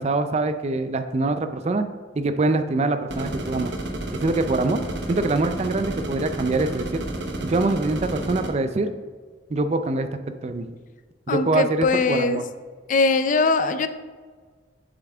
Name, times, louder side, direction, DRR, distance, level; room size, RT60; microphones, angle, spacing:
voice 1, 0.0-1.9 2.2-3.7 4.2-4.8 5.1-7.0 7.4-8.9 9.5-10.7 11.3-12.4, right 2 dB, 35° right, 9 dB, 0.4 m, -24 dB
sound 1, 3.1-8.5, right 1 dB, 75° right, 1.0 m, -31 dB
voice 2, 11.3-12.4 12.9-13.9, left 3 dB, 45° left, 10 dB, 0.4 m, -21 dB
7.5 x 7.2 x 3.5 m, 1.5 s
head